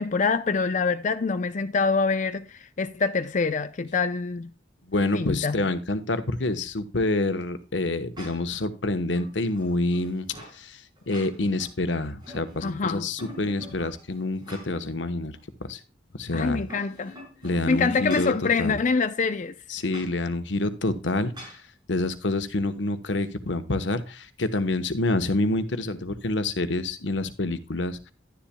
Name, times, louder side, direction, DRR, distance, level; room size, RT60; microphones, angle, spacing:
voice 1, 0.0-4.5 5.1-5.6 12.6-13.1 16.3-17.2 17.7-19.6, left 4 dB, 45° left, 0.5 m, -25 dB
voice 2, 4.9-10.3 10.5-15.4 15.7-15.8 16.2-16.6 17.4-18.3 18.6-18.8 19.7-21.6 21.9-28.1, left 2 dB, 85° left, 1.1 m, -27 dB
Toilet Water Tank Cover, 8.1-8.6 9.1-10.6 11.0-11.7 12.0-12.8 13.2-14.9 15.3-15.4 16.4-18.4 19.9-20.1 21.3-21.6, equal, 25° right, 5.9 m, -45 dB
11.5 x 10.5 x 2.2 m
head